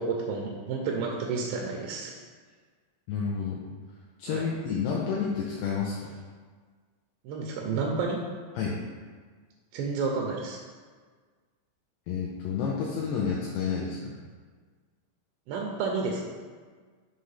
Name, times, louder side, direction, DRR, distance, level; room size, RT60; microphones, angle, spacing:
voice 1, 0.0-2.1 4.3-4.5 7.2-8.2 9.7-10.6 15.5-16.2, right 4 dB, 85° right, -1 dB, 2.4 m, -30 dB
voice 2, 3.1-3.6 4.2-6.1 8.5-8.8 12.1-14.1, left 6 dB, 85° left, -4 dB, 2.3 m, -30 dB
7.3 x 3.3 x 5.6 m, 1.5 s
omnidirectional pair, 5.7 m